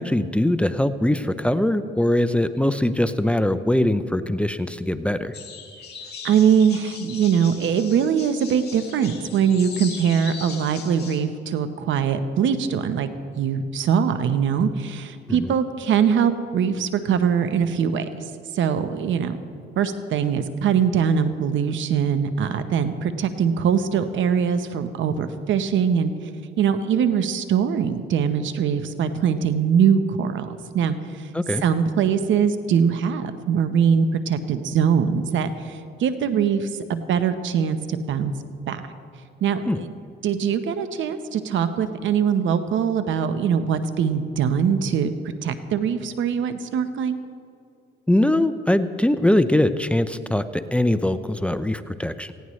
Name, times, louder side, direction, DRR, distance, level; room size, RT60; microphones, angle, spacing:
voice 1, 0.0-5.3 15.3-15.5 31.3-31.6 39.7-39.8 48.1-52.3, left 1 dB, 5° left, 11 dB, 0.6 m, -22 dB
sound 1, 5.3-11.2, left 5 dB, 55° left, 2.7 m, -39 dB
voice 2, 6.2-13.1 13.4-18.1 18.5-19.4 19.8-26.1 26.6-30.5 30.7-31.3 31.6-38.3 38.7-38.8 39.4-39.9 40.2-45.1 45.4-47.2, right 7 dB, 75° right, 10 dB, 1.0 m, -22 dB
18.5 x 16.0 x 3.2 m, 2.4 s
cardioid pair, 90°, 20 cm